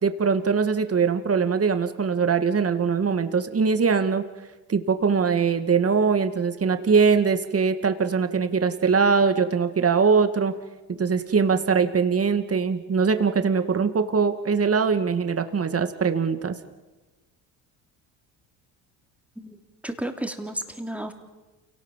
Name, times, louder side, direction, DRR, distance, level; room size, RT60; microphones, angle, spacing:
voice 1, 0.0-4.2 4.7-10.5 10.9-16.6, right 5 dB, 30° right, 9 dB, 2.2 m, -22 dB
voice 2, 19.8-21.1, right 1 dB, 5° right, 5 dB, 3.4 m, -32 dB
28.5 x 18.5 x 7.5 m, 1.2 s
hypercardioid pair, 70°, 47 cm